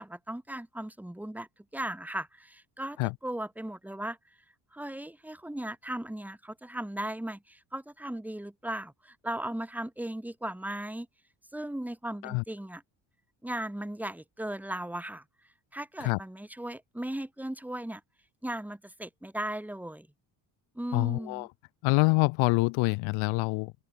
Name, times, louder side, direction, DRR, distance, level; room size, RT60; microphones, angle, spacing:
voice 1, 0.0-3.0 3.2-4.2 4.7-11.1 11.5-12.8 13.4-15.2 15.7-18.0 18.4-20.1 20.8-21.5, right 1 dB, 5° right, 1.7 m, -37 dB
voice 2, 20.9-21.5 21.8-23.7, left 27 dB, 80° left, 0.6 m, -26 dB
open air
supercardioid pair, 75°, 47 cm